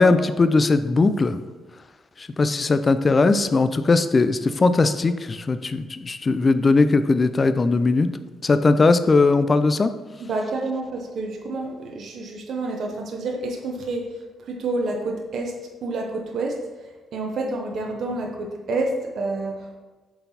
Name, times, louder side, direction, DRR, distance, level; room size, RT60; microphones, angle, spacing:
voice 1, 0.0-1.4 2.2-8.1 8.4-9.9, left 3 dB, 30° left, 11 dB, 0.4 m, -19 dB
voice 2, 10.2-19.8, right 2 dB, 60° right, 1 dB, 0.7 m, -29 dB
6.7 x 4.0 x 4.1 m, 1.2 s
cardioid pair, 110°, 0 cm